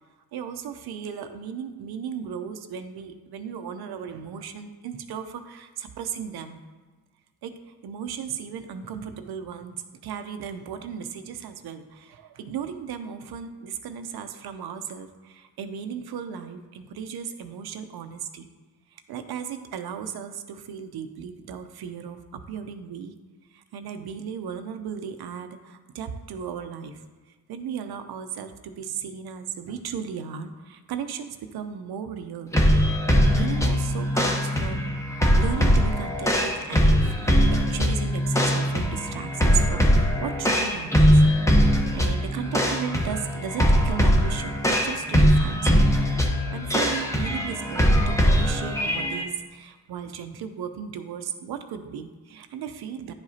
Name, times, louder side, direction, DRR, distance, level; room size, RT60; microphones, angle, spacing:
voice 1, 0.3-6.6 7.4-7.6 7.8-9.7 10.0-18.5 18.9-22.2 22.5-23.1 23.5-27.0 27.5-32.5 33.3-41.2 41.5-45.8 46.5-53.1, right 7 dB, 80° right, 8 dB, 0.7 m, -36 dB
sound 1, 32.5-49.2, equal, 10° left, 1.0 m, -21 dB
10.0 x 4.9 x 2.8 m, 1.3 s
cardioid pair, 85°, 37 cm